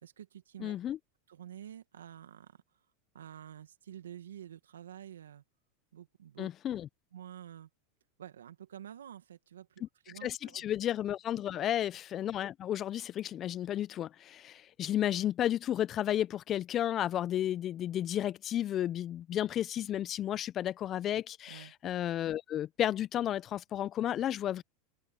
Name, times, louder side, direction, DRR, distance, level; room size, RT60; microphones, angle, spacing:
voice 1, 0.0-0.8 1.3-2.9 3.1-5.4 5.9-6.5 7.1-7.7 8.2-10.6 11.5-11.7 21.5-21.7, right 10 dB, 85° right, 1.9 m, -49 dB
voice 2, 0.6-1.0 6.4-6.9 10.2-24.6, left 11 dB, 40° left, 0.9 m, -33 dB
open air
hypercardioid pair, 95°, 0 cm